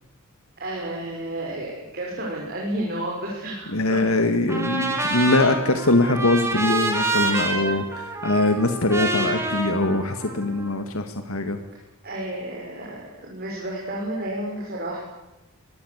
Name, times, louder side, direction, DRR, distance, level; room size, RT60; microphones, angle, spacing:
voice 1, 0.6-4.0 7.2-7.8 8.4-8.6 12.0-15.0, right 1 dB, 45° right, -3 dB, 6.1 m, -32 dB
voice 2, 3.7-11.6, left 2 dB, 70° left, 7 dB, 1.9 m, -22 dB
Trumpet, 4.5-10.7, right 2 dB, 10° right, 4.5 m, -27 dB
25.0 x 19.5 x 8.2 m, 1.0 s
head